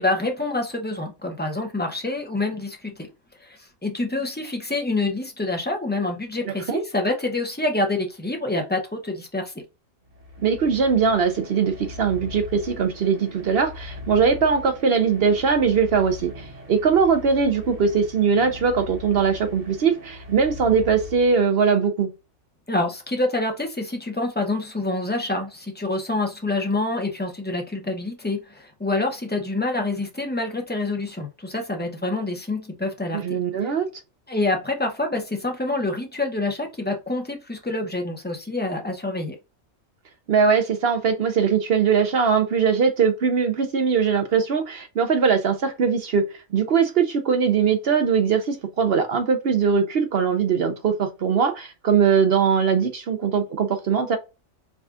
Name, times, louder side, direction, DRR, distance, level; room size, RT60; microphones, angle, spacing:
voice 1, 0.0-3.1 3.4-9.6 22.7-33.4 34.3-39.3, left 2 dB, 10° left, 0.5 m, -27 dB
voice 2, 6.4-6.8 10.4-22.1 33.1-33.9 40.3-46.2 46.5-54.2, right 6 dB, 60° right, 0.7 m, -21 dB
sound 1, 10.0-21.8, left 2 dB, 30° right, 0.9 m, -40 dB
4.9 x 2.3 x 2.4 m
omnidirectional pair, 1.4 m